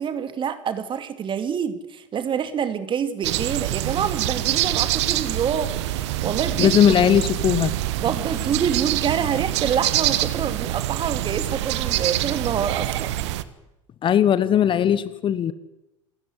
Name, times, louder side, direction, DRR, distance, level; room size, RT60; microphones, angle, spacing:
voice 1, 0.0-6.9 8.0-13.1, right 7 dB, 30° right, 10 dB, 2.5 m, -27 dB
sound 1, 3.2-13.4, right 14 dB, 60° right, 1.4 m, -25 dB
voice 2, 6.6-7.7 14.0-15.5, left 9 dB, 30° left, 16 dB, 1.2 m, -18 dB
28.0 x 13.5 x 9.5 m, 0.96 s
figure-of-eight pair, 80°, 16 cm